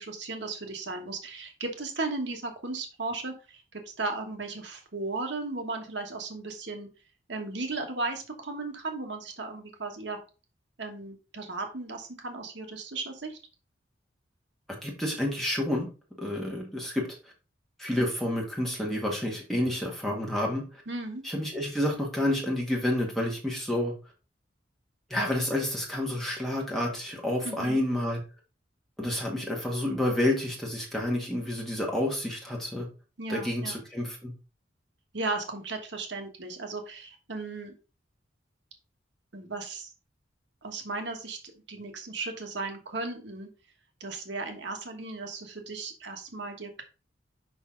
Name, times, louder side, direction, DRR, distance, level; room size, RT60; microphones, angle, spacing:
voice 1, 0.0-6.9 7.3-10.2 10.8-13.4 20.9-21.2 27.4-27.9 33.2-33.8 35.1-37.7 39.3-39.9 40.6-43.5 44.0-46.8, right 3 dB, 70° right, 4 dB, 1.3 m, -36 dB
voice 2, 14.8-15.9 16.2-17.0 17.8-20.6 21.2-23.9 25.1-28.2 29.0-32.9 33.3-34.3, left 1 dB, ahead, -2 dB, 1.8 m, -29 dB
6.1 x 5.5 x 3.8 m, 0.33 s
head